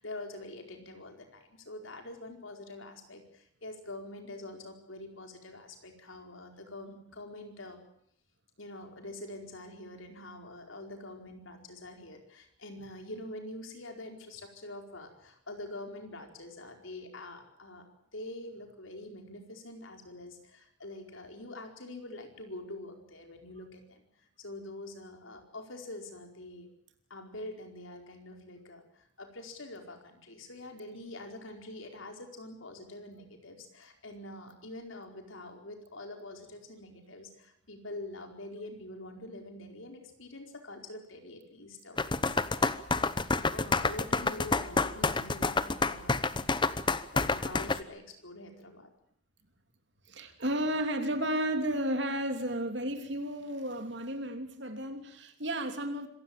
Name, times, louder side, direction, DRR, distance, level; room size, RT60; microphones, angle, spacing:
voice 1, 0.0-7.8 8.6-17.8 18.1-26.7 27.1-46.5 47.1-48.9, left 1 dB, 80° left, 4 dB, 4.8 m, -45 dB
sound 1, 42.0-47.8, left 3 dB, 25° left, 0.8 m, -28 dB
voice 2, 50.1-56.1, right 1 dB, 60° right, 6 dB, 3.1 m, -33 dB
26.5 x 16.0 x 8.8 m, 0.71 s
head